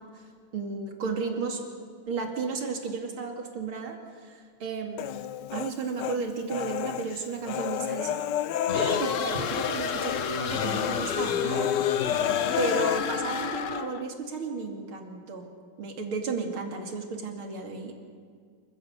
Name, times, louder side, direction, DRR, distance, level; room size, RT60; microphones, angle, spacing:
voice 1, 0.5-1.7 2.1-5.2 5.5-8.2 8.7-11.7 12.6-15.4 15.8-17.9, right 4 dB, 80° right, 3 dB, 3.3 m, -33 dB
Human voice, 5.0-6.2 6.5-9.7 10.0-10.2 10.5-13.0, left 10 dB, 65° left, 1.3 m, -30 dB
sound 1, 8.7-14.0, left 7 dB, 50° left, 1.0 m, -31 dB
28.0 x 15.5 x 8.0 m, 2.1 s
omnidirectional pair, 2.3 m